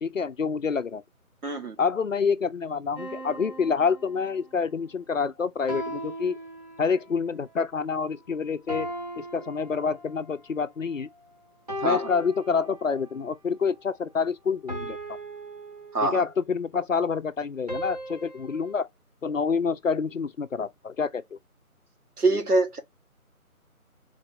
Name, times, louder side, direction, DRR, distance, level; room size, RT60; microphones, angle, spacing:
voice 1, 0.0-1.0 1.8-6.4 6.8-11.1 11.8-15.0 16.0-18.9 19.2-21.4, left 5 dB, 60° left, 0.5 m, -27 dB
voice 2, 1.4-1.8 11.8-12.1 15.9-16.2 22.2-22.8, right 2 dB, 80° right, 1.4 m, -24 dB
sound 1, 3.0-4.6 5.7-7.2 8.7-10.4 11.7-13.2 14.7-16.4 17.7-18.7, equal, 25° right, 1.1 m, -38 dB
3.9 x 2.4 x 2.9 m
figure-of-eight pair, 175°, 44 cm